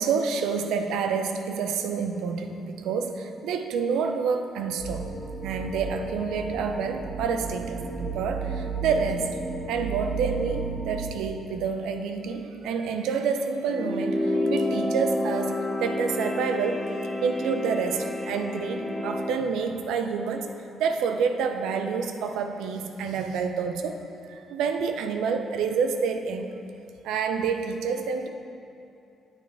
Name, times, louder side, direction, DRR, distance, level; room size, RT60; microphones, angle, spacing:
voice 1, 0.0-5.1 5.4-9.3 9.7-16.9 17.2-24.0 24.3-26.5 27.0-28.3, right 5 dB, 90° right, 6 dB, 0.6 m, -28 dB
sound 1, 4.8-11.1, right 4 dB, 65° right, 1.2 m, -33 dB
sound 2, 13.7-19.4, left 1 dB, 5° left, 0.8 m, -29 dB
9.1 x 8.9 x 3.4 m, 2.7 s
cardioid pair, 90°, 0 cm